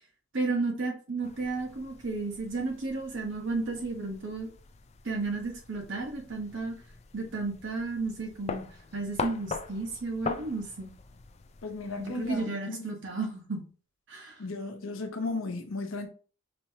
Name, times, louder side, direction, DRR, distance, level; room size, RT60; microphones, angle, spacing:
voice 1, 0.3-4.5 5.0-6.8 7.1-8.6 8.9-10.9 12.0-13.6 14.1-14.4, right 3 dB, 65° right, 1.1 m, -33 dB
sound 1, 1.2-12.4, left 5 dB, 35° left, 0.4 m, -42 dB
voice 2, 11.6-12.9 14.4-16.1, left 3 dB, 85° left, 0.8 m, -35 dB
5.3 x 3.0 x 2.7 m
head